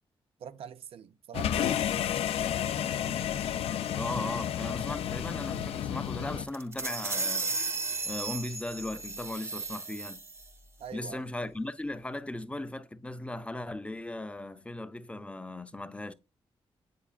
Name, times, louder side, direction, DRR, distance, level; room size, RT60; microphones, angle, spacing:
voice 1, 0.4-1.8 10.8-11.2, right 8 dB, 80° right, 0.5 m, -44 dB
sound 1, 1.3-6.5, left 10 dB, 90° left, 0.4 m, -31 dB
voice 2, 3.9-7.5 8.0-10.2 10.9-16.1, left 1 dB, 10° left, 0.5 m, -37 dB
sound 2, 6.5-10.5, right 3 dB, 25° right, 0.7 m, -34 dB
8.4 x 4.7 x 2.4 m
cardioid pair, 100°, 10 cm